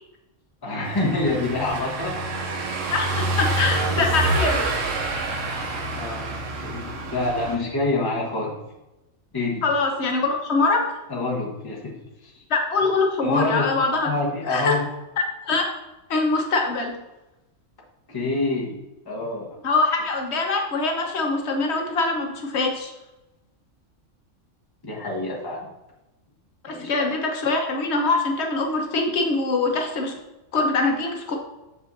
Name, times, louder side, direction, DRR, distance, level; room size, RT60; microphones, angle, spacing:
voice 1, 0.6-2.2 5.9-6.3 6.6-8.5 9.3-9.6 11.1-11.9 12.2-12.4 13.2-13.7 14.0-14.8 18.1-18.8 19.0-19.5 24.8-25.6 26.7-27.1, left 2 dB, 20° left, -3 dB, 1.1 m, -26 dB
Car passing by / Engine, 0.8-7.6, right 2 dB, 80° right, 1.2 m, -27 dB
voice 2, 2.9-4.7 9.6-11.0 12.5-14.1 14.5-14.8 15.2-15.7 16.1-17.0 19.6-22.9 26.6-30.1 30.5-31.4, left 3 dB, 60° left, 2 dB, 1.2 m, -23 dB
6.9 x 5.3 x 2.7 m, 1.0 s
omnidirectional pair, 1.3 m